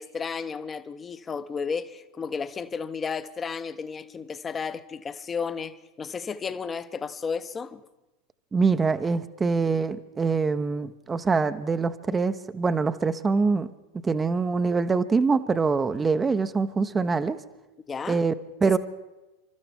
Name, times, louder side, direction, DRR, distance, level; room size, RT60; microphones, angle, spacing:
voice 1, 0.0-7.8 17.9-18.2, left 5 dB, 25° left, 0.8 m, -33 dB
voice 2, 8.5-13.7 14.0-17.4 18.1-18.3 18.6-18.8, right 4 dB, 20° right, 0.7 m, -24 dB
29.5 x 13.0 x 3.5 m
figure-of-eight pair, 90°, 0 cm